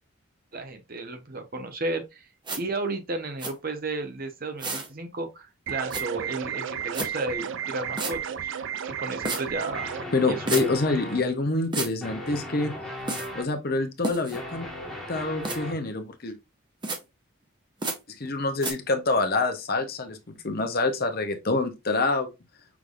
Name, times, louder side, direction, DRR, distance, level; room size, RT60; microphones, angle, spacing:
voice 1, 0.5-2.3 2.6-8.5 8.8-10.0 10.3-10.8, right 2 dB, 45° right, 1.0 m, -33 dB
sound 1, 2.5-2.6 3.4-3.5 4.6-4.9 5.9-6.0 6.9-7.1 8.0-8.1 9.2-9.4 10.5-10.7 11.7-11.9 13.1-13.3 14.0-14.4 15.4-15.6 16.8-17.0 17.8-18.0 18.6-18.7, right 3 dB, 20° right, 0.9 m, -30 dB
sound 2, 5.7-10.1, right 8 dB, 60° right, 0.4 m, -33 dB
sound 3, 9.7-11.4 12.0-13.5 14.1-15.9, left 1 dB, ahead, 1.5 m, -37 dB
voice 2, 10.1-12.7 13.3-14.7 15.1-16.4 18.2-22.3, left 3 dB, 45° left, 0.8 m, -26 dB
6.0 x 3.4 x 2.5 m
head